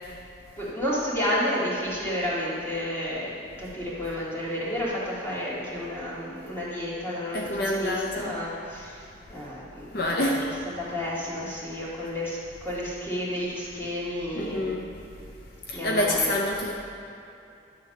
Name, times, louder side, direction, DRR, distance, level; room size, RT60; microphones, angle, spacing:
voice 1, 0.6-3.3 3.6-10.5 10.8-14.7 15.7-16.4, equal, 15° left, -8 dB, 2.1 m, -31 dB
voice 2, 7.3-8.4 9.9-10.4 14.3-15.0 15.7-16.7, left 1 dB, 60° left, 0 dB, 0.7 m, -27 dB
10.5 x 3.7 x 6.6 m, 2.7 s
head